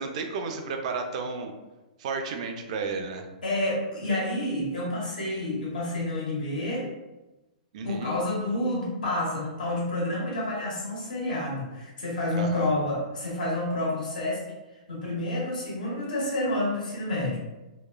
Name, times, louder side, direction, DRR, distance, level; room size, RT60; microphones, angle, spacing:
voice 1, 0.0-1.5 2.0-3.3 7.7-8.2 12.4-12.7, right 4 dB, 55° right, 5 dB, 0.4 m, -32 dB
voice 2, 3.4-6.9 7.8-14.4 14.9-17.4, left 1 dB, 90° left, -4 dB, 1.1 m, -29 dB
2.9 x 2.1 x 2.3 m, 1.1 s
hypercardioid pair, 140°, 4 cm